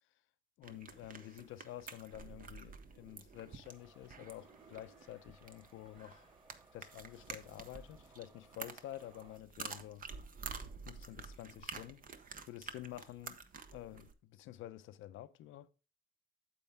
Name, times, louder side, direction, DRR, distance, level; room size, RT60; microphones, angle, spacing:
voice 1, 0.6-6.3 6.7-10.1 10.8-12.1 12.5-13.4 13.7-15.7, left 13 dB, 90° left, 0.7 m, -49 dB
sound 1, 0.6-14.1, right 5 dB, 45° right, 1.0 m, -50 dB
sound 2, 3.6-9.4, right 2 dB, 25° right, 2.4 m, -65 dB
8.7 x 7.9 x 3.5 m
cardioid pair, 90°, 20 cm